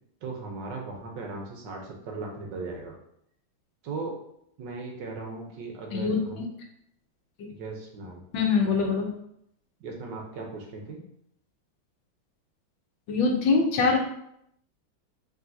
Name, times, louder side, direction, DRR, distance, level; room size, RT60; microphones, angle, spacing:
voice 1, 0.2-3.0 3.8-4.2 4.6-6.4 7.5-8.2 9.8-11.0, right 3 dB, 70° right, 1 dB, 1.3 m, -37 dB
voice 2, 5.9-6.4 7.4-7.5 8.3-9.1 13.1-14.0, left 4 dB, 75° left, 2 dB, 1.4 m, -24 dB
5.1 x 3.1 x 2.7 m, 0.73 s
omnidirectional pair, 2.2 m